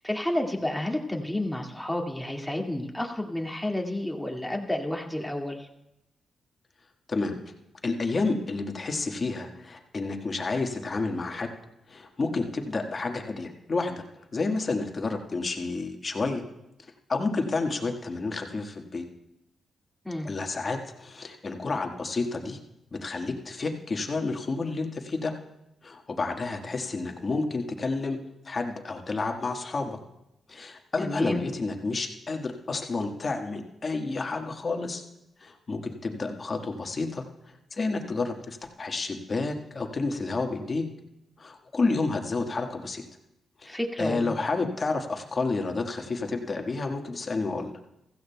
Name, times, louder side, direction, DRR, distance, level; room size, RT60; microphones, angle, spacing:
voice 1, 0.0-5.7 20.0-20.3 31.0-31.4 43.6-44.3, left 1 dB, 5° left, 1 dB, 2.0 m, -30 dB
voice 2, 7.8-11.5 11.9-14.0 14.3-16.4 17.1-19.0 20.2-22.6 22.9-25.3 25.8-28.2 28.4-30.0 30.5-35.0 35.4-37.2 37.7-40.9 41.4-43.0 43.6-47.7, left 3 dB, 45° left, 3 dB, 1.6 m, -30 dB
16.0 x 15.0 x 2.3 m, 0.88 s
supercardioid pair, 50°, 0 cm